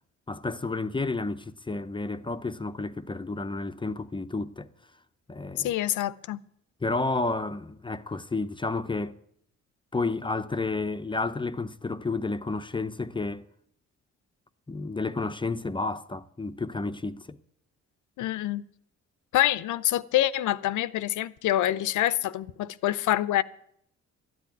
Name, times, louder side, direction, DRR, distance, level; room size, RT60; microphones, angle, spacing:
voice 1, 0.3-4.7 5.3-5.7 6.8-9.2 9.9-13.4 14.7-17.4, left 3 dB, 15° left, 0.6 m, -31 dB
voice 2, 5.6-6.4 18.2-18.6 19.3-23.4, left 13 dB, 80° left, 0.7 m, -26 dB
13.0 x 8.6 x 9.2 m
cardioid pair, 90°, 30 cm